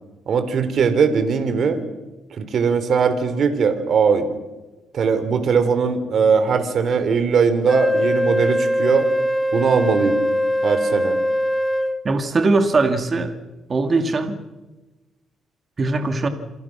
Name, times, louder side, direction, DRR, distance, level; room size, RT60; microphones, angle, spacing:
voice 1, 0.3-1.8 2.3-4.3 4.9-9.1 9.5-10.2 10.6-11.2, right 6 dB, 60° right, 10 dB, 3.5 m, -19 dB
Wind instrument woodwind instrument, 7.7-12.0, equal, 5° left, 1.8 m, -21 dB
voice 2, 12.0-13.3 13.7-14.4 15.8-16.3, right 3 dB, 35° right, 7 dB, 2.6 m, -20 dB
28.5 x 26.5 x 6.1 m, 1.1 s
cardioid pair, 90°, 0 cm